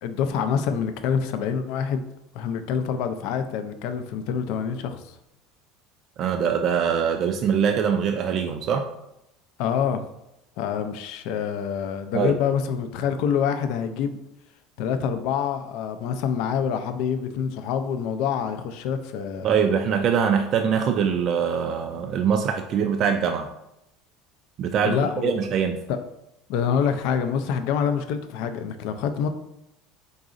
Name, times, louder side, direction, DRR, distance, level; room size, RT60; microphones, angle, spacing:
voice 1, 0.0-2.0 2.3-5.2 9.6-10.0 10.6-14.2 14.8-19.5 24.8-25.3 25.9-26.0 26.5-29.3, left 7 dB, 70° left, 9 dB, 0.4 m, -26 dB
voice 2, 6.2-8.9 12.1-12.4 19.4-23.5 24.6-25.8, right 7 dB, 50° right, 5 dB, 0.3 m, -23 dB
3.8 x 3.8 x 2.5 m, 0.85 s
supercardioid pair, 100°, 0 cm